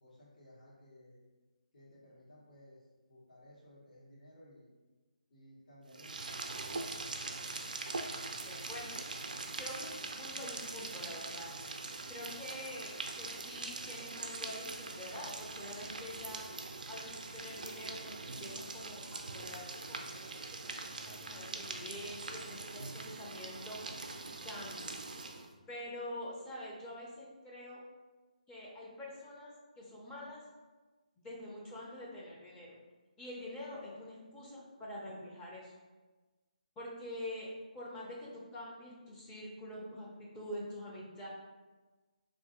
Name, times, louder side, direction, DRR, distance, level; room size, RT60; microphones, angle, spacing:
voice 1, 0.0-1.2 1.7-4.7 5.3-6.5 6.9-7.3, left 1 dB, 70° left, -6 dB, 1.3 m, -58 dB
sound 1, 5.9-25.5, right 3 dB, 75° right, 0.4 m, -43 dB
voice 2, 8.1-9.3 9.6-11.5 12.1-16.5 16.9-20.3 20.6-23.8 24.4-25.0 25.7-27.8 28.5-30.4 31.2-32.7 33.2-35.7 36.8-37.5 37.7-41.3, left 1 dB, 15° left, -5 dB, 0.5 m, -46 dB
2.6 x 2.6 x 3.6 m, 1.3 s
hypercardioid pair, 155°, 4 cm